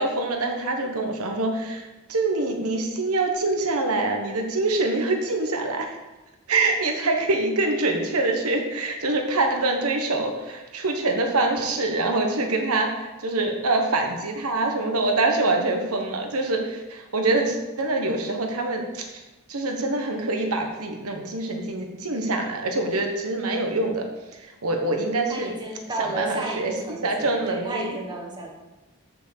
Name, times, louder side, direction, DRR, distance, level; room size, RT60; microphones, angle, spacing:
voice 1, 0.0-6.0 6.5-19.2 19.5-24.0 24.3-25.5 26.0-28.0, right 2 dB, 85° right, 4 dB, 1.2 m, -25 dB
voice 2, 25.3-28.5, right 2 dB, 20° right, -1 dB, 1.4 m, -32 dB
7.1 x 6.0 x 6.8 m, 1.1 s
head